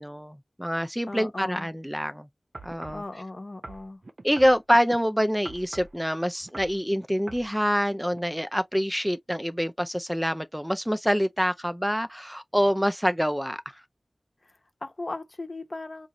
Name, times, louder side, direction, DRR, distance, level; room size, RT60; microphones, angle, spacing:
voice 1, 0.0-2.3 2.6-3.0 4.2-13.8, equal, 5° right, 0.3 m, -26 dB
voice 2, 1.1-1.7 2.9-4.0 14.4-16.1, left 2 dB, 50° left, 0.8 m, -37 dB
sound 1, 2.5-3.1 3.6-5.0 5.4-6.0 6.4-6.8 7.3-7.5 8.1-8.2, right 2 dB, 60° right, 0.6 m, -42 dB
4.0 x 2.4 x 2.9 m
wide cardioid pair, 50°, 0 cm